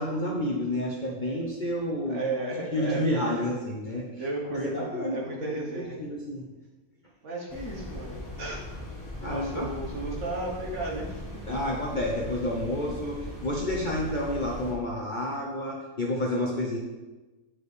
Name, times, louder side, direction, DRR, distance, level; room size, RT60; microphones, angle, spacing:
voice 1, 0.0-2.2 2.7-4.2 4.5-6.5 9.2-9.7 11.5-16.8, left 1 dB, 40° left, -3 dB, 0.8 m, -30 dB
voice 2, 2.1-3.4 4.2-6.0 7.2-8.6 9.2-11.2, right 2 dB, 55° right, -3 dB, 1.5 m, -34 dB
sound 1, 7.5-14.7, left 1 dB, 15° left, 1.1 m, -39 dB
8.7 x 4.6 x 3.3 m, 1.1 s
omnidirectional pair, 1.5 m